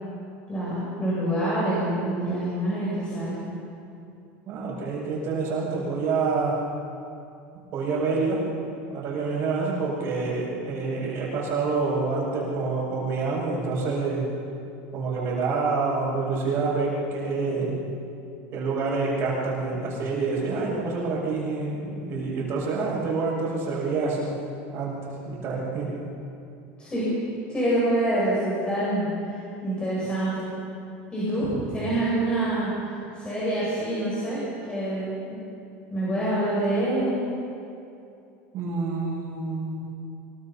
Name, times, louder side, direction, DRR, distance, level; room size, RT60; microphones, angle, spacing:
voice 1, 0.5-3.3 26.8-27.1 27.5-30.5 31.1-32.7 33.1-35.4 35.9-37.2, right 1 dB, 15° left, -9 dB, 7.8 m, -26 dB
voice 2, 4.4-6.6 7.7-8.4 8.9-14.2 14.9-17.8 18.5-24.4 24.7-26.0 31.4-31.7 38.5-39.8, right 4 dB, 40° right, -8 dB, 6.6 m, -27 dB
25.0 x 23.0 x 5.7 m, 2.6 s
supercardioid pair, 145°, 6 cm